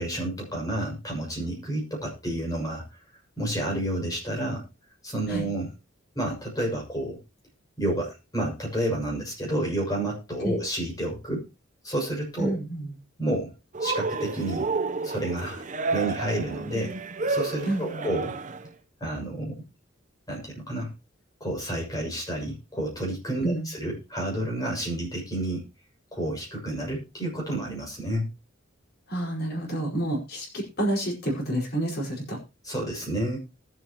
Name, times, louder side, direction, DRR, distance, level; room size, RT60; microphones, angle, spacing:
voice 1, 0.0-2.8 3.4-4.6 5.0-5.7 6.1-7.2 7.8-11.4 11.8-12.5 13.2-13.5 13.8-14.7 15.0-15.6 15.9-16.9 17.3-18.3 19.0-19.6 20.3-20.9 21.4-25.6 26.1-28.3 32.6-33.4, right 1 dB, 20° left, -2 dB, 6.6 m, -30 dB
voice 2, 12.4-12.9 17.6-18.0 23.4-23.7 29.1-32.4, right 1 dB, 55° left, 0 dB, 5.2 m, -29 dB
Cheering, 13.7-18.7, right 3 dB, 40° right, 0.9 m, -30 dB
20.0 x 7.9 x 3.0 m, 0.26 s
head